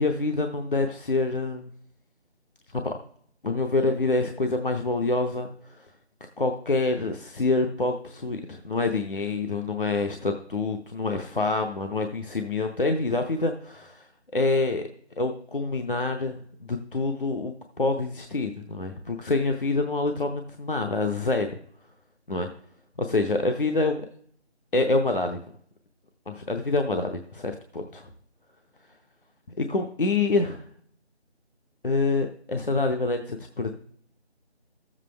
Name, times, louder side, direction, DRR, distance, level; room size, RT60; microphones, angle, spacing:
voice 1, 0.0-1.7 2.7-3.0 3.4-5.5 5.8-5.9 6.4-14.1 14.3-14.9 15.2-16.4 16.7-21.6 22.3-22.5 23.0-24.1 24.7-25.4 26.3-28.1 29.6-30.5 31.8-33.7, left 3 dB, 50° left, 5 dB, 0.7 m, -26 dB
13.0 x 7.4 x 3.3 m, 0.62 s
figure-of-eight pair, 175°, 34 cm